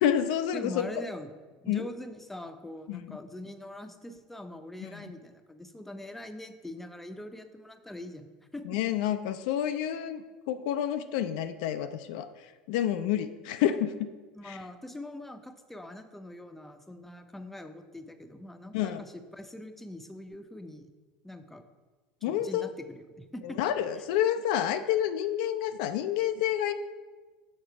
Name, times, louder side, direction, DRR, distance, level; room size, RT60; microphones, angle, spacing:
voice 1, 0.0-0.9 1.7-1.9 2.9-3.2 4.8-5.1 8.6-12.3 12.7-14.1 14.4-14.6 18.7-19.0 22.2-22.7 23.4-26.7, left 10 dB, 70° left, 10 dB, 0.4 m, -29 dB
voice 2, 0.5-1.3 1.6-8.3 8.5-8.8 14.3-20.9 21.2-21.6 22.3-23.6, left 1 dB, 5° left, 7 dB, 0.6 m, -43 dB
6.5 x 3.9 x 5.7 m, 1.3 s
hypercardioid pair, 85°, 4 cm